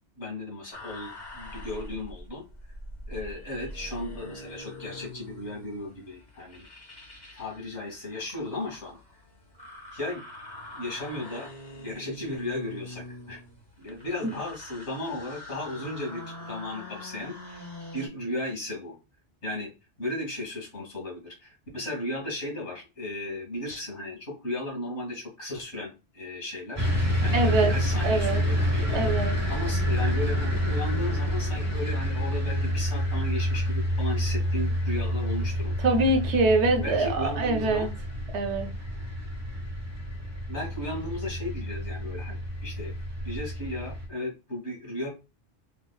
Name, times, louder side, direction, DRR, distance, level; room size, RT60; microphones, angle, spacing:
voice 1, 0.2-2.4 3.1-6.7 7.3-9.0 9.9-10.2 10.7-13.4 13.8-17.6 17.9-19.0 19.4-19.7 20.0-26.9 27.2-29.2 29.5-36.1 36.8-37.9 40.5-42.9 43.2-45.1, left 1 dB, 75° left, 2.0 m, -35 dB
sound 1, 0.7-18.1, left 1 dB, 25° left, 0.9 m, -44 dB
sound 2, 26.8-44.1, equal, 15° right, 0.9 m, -28 dB
voice 2, 27.3-27.7 28.0-28.4 28.9-29.3 35.8-37.9 38.3-38.7, right 2 dB, 80° right, 1.0 m, -24 dB
3.7 x 3.1 x 2.3 m
omnidirectional pair, 1.2 m